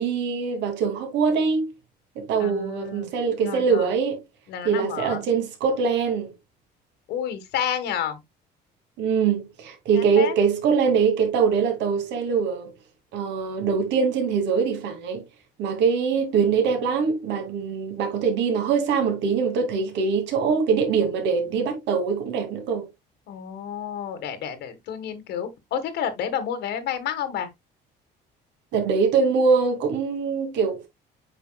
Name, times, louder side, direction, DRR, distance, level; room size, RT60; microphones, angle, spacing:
voice 1, 0.0-1.7 2.2-4.2 4.6-6.3 9.0-12.7 13.1-15.2 15.6-22.9 28.7-30.9, right 5 dB, 80° right, 2.4 m, -23 dB
voice 2, 2.4-3.1 3.4-3.9 4.5-5.2 7.1-8.2 9.9-10.3 23.3-27.5, left 9 dB, 70° left, 1.4 m, -30 dB
8.2 x 5.5 x 2.2 m
cardioid pair, 165°, 18 cm